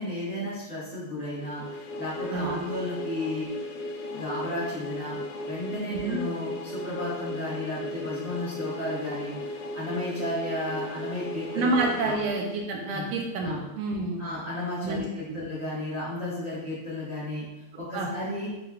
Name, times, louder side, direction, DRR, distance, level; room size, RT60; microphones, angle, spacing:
voice 1, 0.0-3.5 4.1-5.2 5.4-12.1 12.9-13.0 13.4-13.6 14.2-17.4 17.8-18.5, left 1 dB, 70° right, -10 dB, 0.7 m, -33 dB
sound 1, 1.3-13.1, left 1 dB, 80° left, 2.0 m, -37 dB
voice 2, 2.3-2.6 5.9-6.2 11.5-14.2 14.8-15.0 15.3-15.4 17.9-18.1, right 3 dB, 85° right, 1 dB, 1.4 m, -28 dB
5.2 x 3.2 x 2.3 m, 0.99 s
omnidirectional pair, 3.5 m